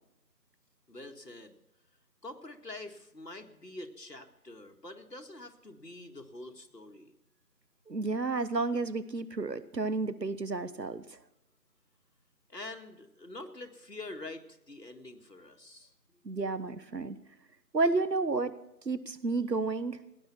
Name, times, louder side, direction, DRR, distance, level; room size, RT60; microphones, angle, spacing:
voice 1, 0.9-1.6 2.2-7.1 12.5-15.9, left 2 dB, 85° left, 5 dB, 2.1 m, -46 dB
voice 2, 7.9-11.0 16.2-17.2 17.7-18.5 18.8-20.0, right 3 dB, 85° right, 15 dB, 1.3 m, -31 dB
17.5 x 10.5 x 6.1 m, 0.90 s
figure-of-eight pair, 175°, 48 cm